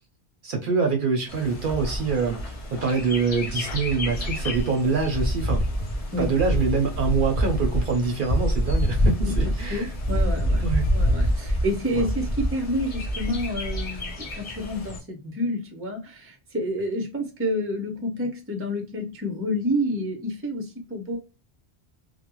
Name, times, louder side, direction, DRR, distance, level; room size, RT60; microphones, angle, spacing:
voice 1, 0.4-5.6 6.2-9.9 10.6-10.9 12.0-12.1, right 4 dB, 60° right, 0.7 m, -25 dB
Bird, 1.3-15.0, equal, 40° left, 0.6 m, -27 dB
voice 2, 9.7-10.6 10.9-21.2, equal, 15° right, 0.5 m, -29 dB
2.3 x 2.1 x 2.9 m
omnidirectional pair, 1.1 m